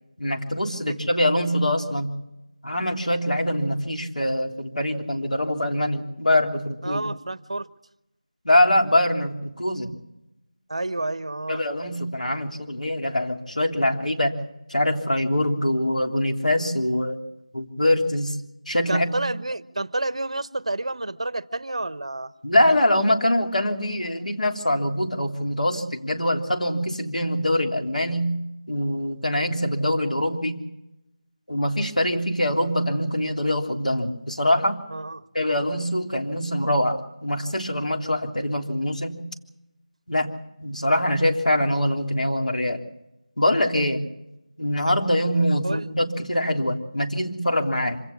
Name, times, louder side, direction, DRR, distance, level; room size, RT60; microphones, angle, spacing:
voice 1, 0.2-2.1 2.6-7.0 8.4-10.0 11.5-14.4 14.7-17.2 17.5-18.4 18.7-19.3 22.4-28.4 28.7-30.6 31.5-34.8 35.3-39.2 40.1-42.8 43.4-44.0 44.6-48.0, left 1 dB, 80° left, 3 dB, 3.4 m, -23 dB
voice 2, 6.8-7.7 10.7-11.6 18.9-22.3 34.9-35.2 45.6-45.8, right 2 dB, 55° right, 16 dB, 1.0 m, -29 dB
26.0 x 17.0 x 7.2 m, 0.88 s
figure-of-eight pair, 175°, 4 cm